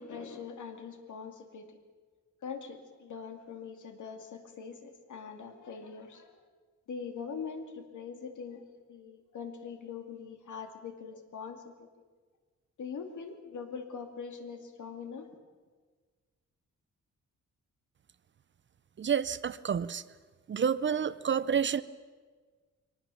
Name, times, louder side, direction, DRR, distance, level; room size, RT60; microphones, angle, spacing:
voice 1, 0.0-1.7 2.4-6.4 6.9-8.6 8.9-11.9 12.8-15.4, left 6 dB, 75° left, 5 dB, 2.4 m, -42 dB
voice 2, 19.0-20.0 20.5-21.8, right 7 dB, 40° right, 16 dB, 0.5 m, -29 dB
23.5 x 18.5 x 7.0 m, 1.5 s
wide cardioid pair, 170°, 30 cm